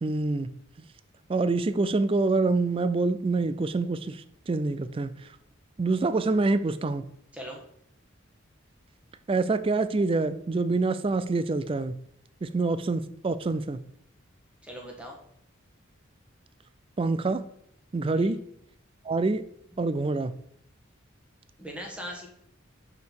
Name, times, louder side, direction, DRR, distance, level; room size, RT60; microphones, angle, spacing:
voice 1, 0.0-0.5 1.3-4.2 4.5-5.1 5.8-7.0 9.3-12.0 12.4-13.8 17.0-17.5 17.9-18.4 19.1-19.4 19.8-20.3, right 3 dB, 25° right, 13 dB, 0.3 m, -26 dB
voice 2, 14.6-15.2 18.1-18.3 21.6-22.3, equal, 5° right, 0 dB, 1.4 m, -39 dB
5.3 x 4.9 x 6.0 m, 0.72 s
head